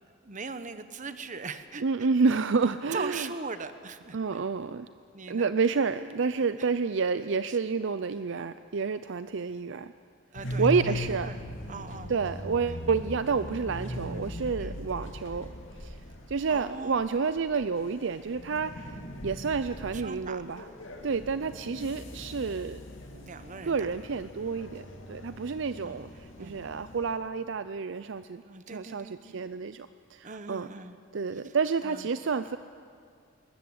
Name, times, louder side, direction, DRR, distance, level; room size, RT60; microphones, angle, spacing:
voice 1, 0.2-1.8 2.3-2.4 2.9-4.4 5.1-5.5 6.6-6.7 7.5-7.6 10.3-12.1 12.7-12.8 14.6-14.8 16.5-16.9 19.9-20.4 23.2-23.9 25.8-26.1 26.4-26.6 28.4-29.5 30.2-31.0 31.4-31.5 31.8-32.1, right 4 dB, 40° right, 11 dB, 1.1 m, -40 dB
voice 2, 1.8-3.3 4.1-4.9 5.3-9.9 10.6-11.3 12.1-15.5 15.8-16.0 16.3-19.0 19.2-20.7 21.0-22.8 23.1-23.3 23.6-26.1 26.4-30.7 31.1-32.6, right 5 dB, 60° right, 12 dB, 0.5 m, -29 dB
sound 1, 10.4-27.2, equal, 65° left, 2.6 m, -39 dB
20.5 x 20.5 x 8.1 m, 2.3 s
head